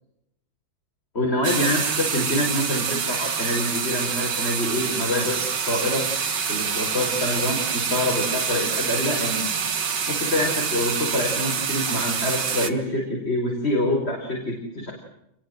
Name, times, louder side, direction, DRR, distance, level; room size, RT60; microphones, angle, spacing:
voice 1, 1.1-6.0 6.5-9.5 10.1-14.9, left 1 dB, 30° left, 0 dB, 5.3 m, -26 dB
sound 1, 1.4-12.7, right 6 dB, 65° right, 2.2 m, -26 dB
28.5 x 22.0 x 7.9 m, 0.82 s
omnidirectional pair, 2.1 m